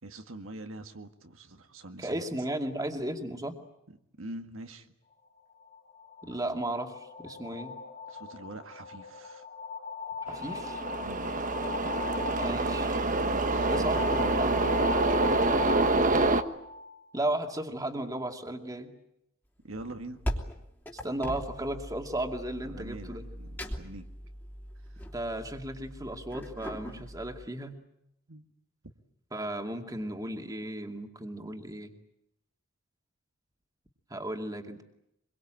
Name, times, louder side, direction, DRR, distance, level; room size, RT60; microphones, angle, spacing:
voice 1, 0.0-2.5 3.9-4.9 8.1-9.4 11.0-11.3 13.3-14.4 19.6-20.2 22.7-24.1 24.8-25.0 28.3-28.5, right 2 dB, 75° right, 6 dB, 1.8 m, -44 dB
voice 2, 2.0-3.6 6.2-7.7 10.3-10.8 12.4-13.0 13.7-14.7 17.1-18.9 21.0-23.2 25.1-27.7 29.3-31.9 34.1-34.8, right 1 dB, 15° right, 4 dB, 2.4 m, -35 dB
sound 1, 5.6-17.3, left 4 dB, 40° left, 3.8 m, -39 dB
sound 2, 10.3-16.4, right 2 dB, 40° right, 1.3 m, -27 dB
sound 3, 19.7-27.5, equal, 10° left, 2.9 m, -40 dB
25.0 x 23.0 x 9.0 m, 0.79 s
head